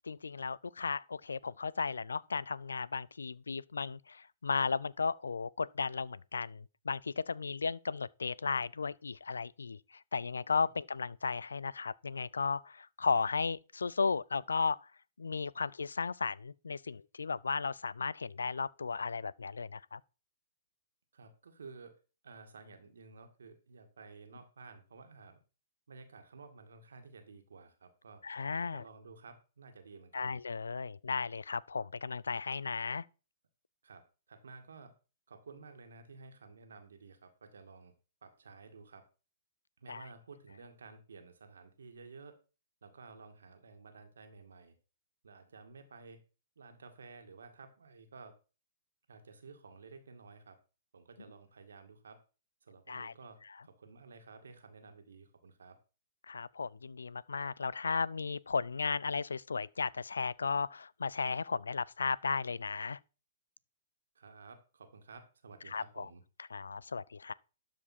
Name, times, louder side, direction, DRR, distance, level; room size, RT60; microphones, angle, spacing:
voice 1, 0.0-14.9 15.2-20.0 28.2-28.8 30.1-33.1 39.9-40.1 52.9-53.1 56.3-63.0 65.7-66.1 66.5-67.3, left 5 dB, 90° left, 0.4 m, -35 dB
voice 2, 21.1-22.0 22.2-25.4 25.9-28.2 28.7-30.4 33.8-35.0 35.3-37.9 38.2-39.1 39.8-42.4 42.8-44.7 45.2-46.2 46.6-48.4 49.1-50.6 50.9-52.2 52.6-55.8 64.2-66.2, right 4 dB, 80° right, 2.0 m, -53 dB
12.0 x 5.0 x 4.3 m
hypercardioid pair, 130°, 0 cm